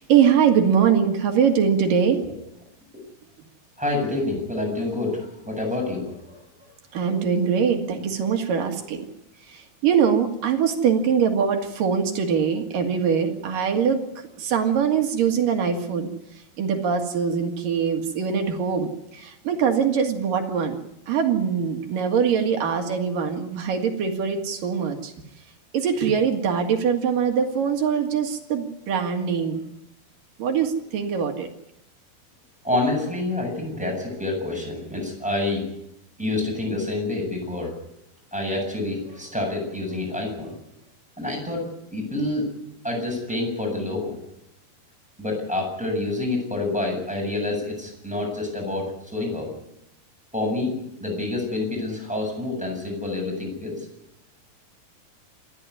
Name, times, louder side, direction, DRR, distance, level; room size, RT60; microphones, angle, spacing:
voice 1, 0.0-2.2 6.9-9.0 9.5-14.0 14.4-20.8 21.1-25.1 25.7-29.6 30.4-31.5, right 7 dB, 60° right, 4 dB, 3.3 m, -22 dB
voice 2, 3.8-6.4 32.6-35.6 36.2-37.8 38.3-40.5 41.2-41.7 41.9-42.5 42.8-44.2 45.2-49.5 50.3-53.9, left 2 dB, ahead, 1 dB, 7.5 m, -27 dB
27.5 x 12.5 x 9.8 m, 0.81 s
omnidirectional pair, 4.6 m